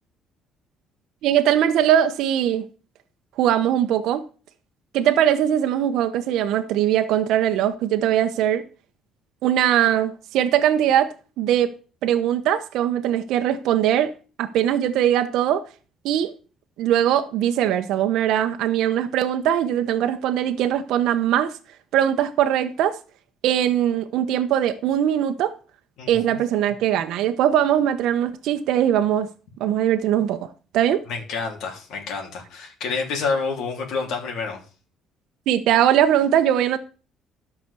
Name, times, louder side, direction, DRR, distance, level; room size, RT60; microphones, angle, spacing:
voice 1, 1.2-2.6 3.4-4.2 4.9-8.6 9.4-11.7 12.0-14.1 14.4-15.6 16.0-16.3 16.8-21.5 21.9-23.0 23.4-25.5 26.1-29.3 29.6-30.5 30.7-31.0 35.5-36.8, right 10 dB, 75° right, 0.9 m, -21 dB
voice 2, 26.0-26.4 31.1-34.6, left 4 dB, 75° left, 3.4 m, -28 dB
12.5 x 6.0 x 6.8 m
cardioid pair, 125°, 0 cm